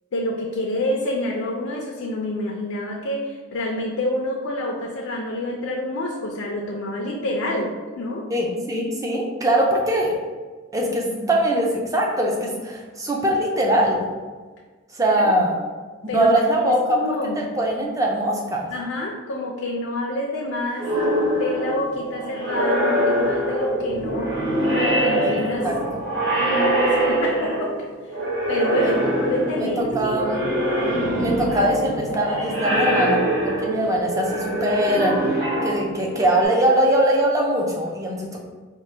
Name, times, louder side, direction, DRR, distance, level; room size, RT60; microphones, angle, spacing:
voice 1, 0.1-8.3 15.1-15.3 16.1-17.4 18.7-20.9 21.4-24.3 24.7-25.7 26.4-28.2 28.5-30.2, left 1 dB, 65° left, 0 dB, 0.4 m, -27 dB
voice 2, 8.3-10.1 10.7-14.0 14.9-15.6 16.0-17.0 17.4-18.7 25.2-25.3 25.6-26.0 28.8-28.9 29.6-30.4 31.2-35.2 35.6-38.4, right 1 dB, 15° right, -1 dB, 0.4 m, -22 dB
sound 1, 20.8-27.8 28.1-36.4, right 1 dB, 50° right, 1.4 m, -23 dB
4.4 x 2.1 x 3.2 m, 1.4 s
head